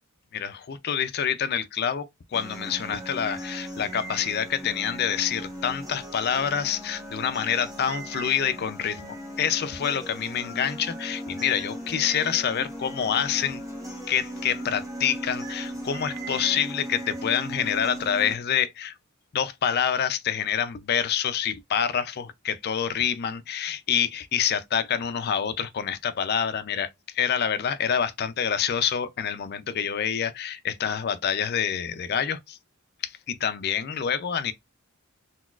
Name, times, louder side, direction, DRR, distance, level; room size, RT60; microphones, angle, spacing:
voice 1, 0.3-13.6 14.1-18.9 19.3-32.6 33.0-34.5, left 8 dB, 45° left, 0.4 m, -27 dB
sound 1, 2.3-18.3, equal, 15° right, 0.9 m, -37 dB
3.9 x 2.3 x 2.3 m
head